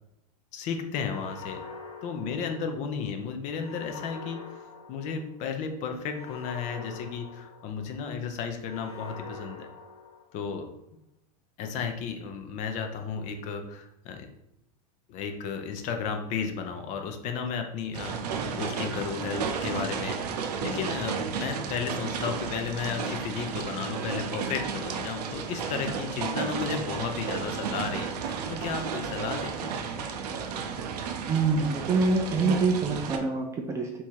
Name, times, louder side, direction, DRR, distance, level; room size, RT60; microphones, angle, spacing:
voice 1, 0.5-1.6 2.0-4.4 4.9-9.7 10.3-10.7 11.6-14.3 15.1-29.7, left 6 dB, 40° left, 6 dB, 0.6 m, -34 dB
sound 1, 1.1-3.0 3.6-5.4 6.1-8.0 8.7-10.5, left 4 dB, 70° left, 1.3 m, -44 dB
sound 2, 17.9-33.2, right 6 dB, 85° right, 0.7 m, -33 dB
voice 2, 31.3-34.0, right 4 dB, 15° right, 2 dB, 0.3 m, -25 dB
3.6 x 2.8 x 4.5 m, 0.85 s
supercardioid pair, 145°, 20 cm